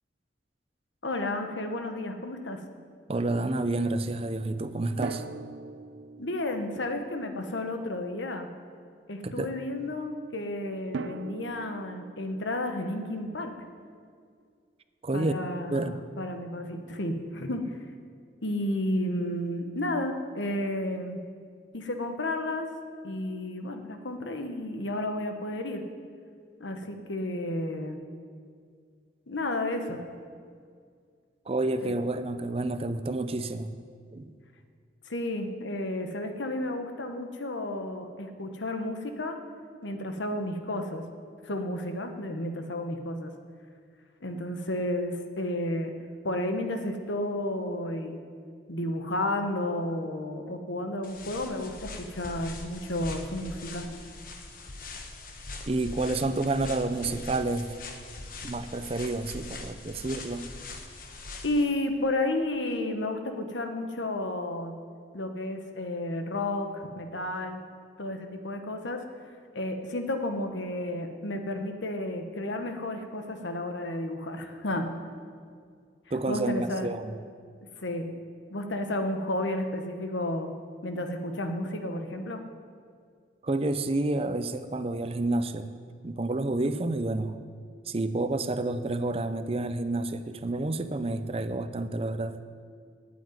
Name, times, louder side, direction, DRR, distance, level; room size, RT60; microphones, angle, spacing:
voice 1, 1.0-2.6 6.2-8.5 9.1-13.5 15.1-17.6 18.4-21.2 21.7-22.7 23.0-25.8 26.6-28.0 29.3-30.0 31.8-31.9 35.1-39.4 39.8-41.0 41.4-43.3 44.2-45.9 46.2-48.2 48.7-53.9 61.4-64.7 65.1-67.6 68.0-69.0 69.5-74.9 76.3-76.9 77.8-78.1 78.5-80.5 80.8-82.4, left 1 dB, 85° left, 6 dB, 1.2 m, -32 dB
Drum, 1.2-2.5 5.0-8.0 10.9-13.8, right 4 dB, 80° right, 0.4 m, -42 dB
voice 2, 3.1-5.2 9.2-9.5 15.0-15.4 15.7-16.0 31.5-33.7 34.1-34.3 55.7-57.7 58.4-60.5 76.1-77.2 83.4-85.7 86.0-87.4 87.9-92.4, right 2 dB, 30° right, 10 dB, 0.5 m, -29 dB
sound 1, 51.0-61.7, left 2 dB, 50° left, 1.1 m, -42 dB
9.0 x 8.4 x 9.4 m, 2.1 s
head